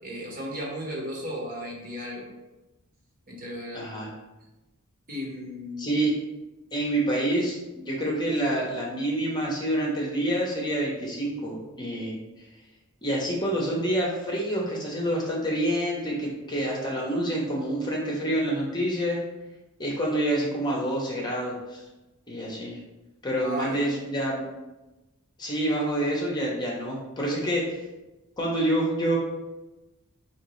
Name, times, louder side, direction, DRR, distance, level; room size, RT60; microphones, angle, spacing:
voice 1, 0.0-2.3 3.3-3.8 5.1-6.0 23.4-23.8, equal, 40° right, -3 dB, 1.1 m, -35 dB
voice 2, 3.7-4.1 5.8-6.1 6.7-12.1 13.0-19.2 19.8-21.8 22.3-22.8 23.2-24.4 25.4-27.8 28.4-29.2, right 1 dB, 20° left, -3 dB, 0.8 m, -27 dB
5.1 x 2.9 x 3.0 m, 1.0 s
head